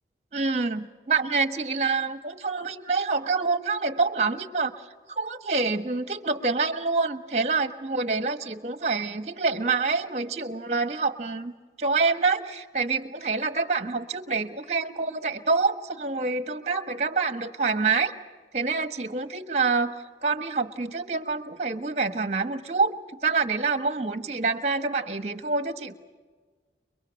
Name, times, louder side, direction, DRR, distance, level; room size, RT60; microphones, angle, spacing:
voice 1, 0.3-4.7 5.2-11.5 11.8-18.1 18.5-19.9 20.2-22.9 23.2-26.0, right 4 dB, 40° right, 9 dB, 1.3 m, -26 dB
29.5 x 23.0 x 6.4 m, 1.4 s
head